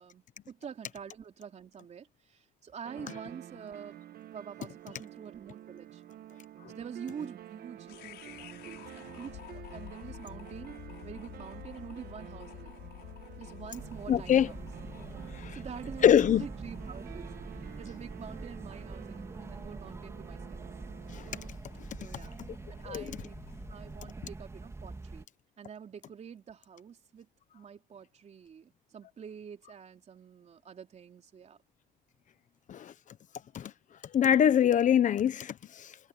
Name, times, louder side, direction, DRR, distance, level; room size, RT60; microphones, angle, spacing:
voice 1, 0.0-4.0 4.3-6.0 6.7-12.7 13.4-14.7 15.5-17.3 17.8-20.6 22.0-22.4 22.7-23.4 23.7-25.3 25.6-31.6, right 7 dB, 40° right, 3.4 m, -46 dB
sound 1, 2.8-21.5, right 11 dB, 65° right, 1.5 m, -49 dB
sound 2, 7.9-24.1, left 15 dB, 80° left, 7.3 m, -51 dB
sound 3, 13.8-25.3, right 3 dB, 15° right, 2.6 m, -44 dB
voice 2, 14.1-14.5 15.3-15.6 16.0-16.5 21.1-21.2 21.8-21.9 22.9-23.0 32.7-32.9 33.5-33.7 34.1-36.1, left 9 dB, 50° left, 1.2 m, -24 dB
cardioid pair, 110°, 17 cm